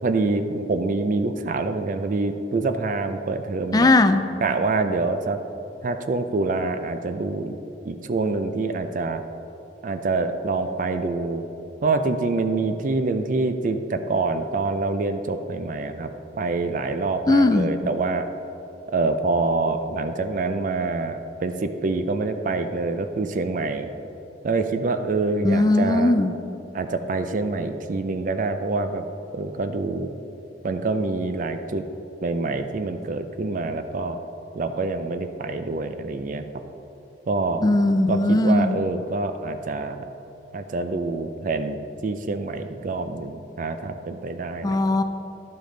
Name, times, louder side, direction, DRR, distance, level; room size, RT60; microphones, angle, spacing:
voice 1, 0.0-3.9 4.4-5.4 5.8-7.6 7.8-9.2 9.8-11.4 11.8-16.1 16.4-18.3 18.9-23.9 24.4-26.2 26.7-29.1 29.3-30.1 30.6-31.9 32.2-34.2 34.5-36.4 37.3-37.7 38.1-40.0 40.5-41.8 42.0-44.8, right 3 dB, 45° right, 8 dB, 0.4 m, -26 dB
voice 2, 3.7-4.2 17.3-17.7 25.4-26.3 37.6-38.8 44.6-45.0, left 2 dB, 20° left, 9 dB, 0.3 m, -18 dB
11.5 x 5.2 x 3.8 m, 2.9 s
head